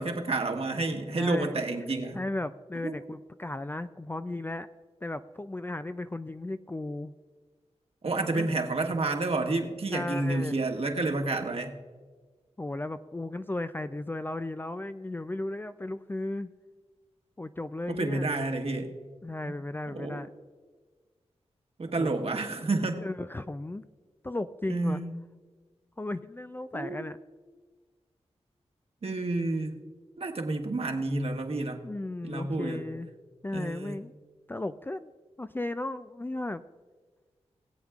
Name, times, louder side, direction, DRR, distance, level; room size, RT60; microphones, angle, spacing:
voice 1, 0.0-2.2 2.8-2.9 8.0-11.7 17.9-18.9 19.4-19.6 19.9-20.2 21.8-23.0 24.7-25.2 26.7-27.0 29.0-29.7 30.2-31.8 32.2-32.9 33.5-34.0, right 2 dB, 55° right, 4 dB, 1.3 m, -30 dB
voice 2, 1.2-4.7 5.0-7.1 8.3-8.6 9.9-10.6 12.6-16.5 17.4-18.3 19.2-20.3 22.0-22.2 23.0-23.8 24.2-25.0 26.0-27.2 31.8-33.1 33.4-34.1 34.5-35.1 35.4-36.6, left 2 dB, 15° left, 11 dB, 0.3 m, -35 dB
20.5 x 8.0 x 2.4 m, 1.4 s
cardioid pair, 60°, 12 cm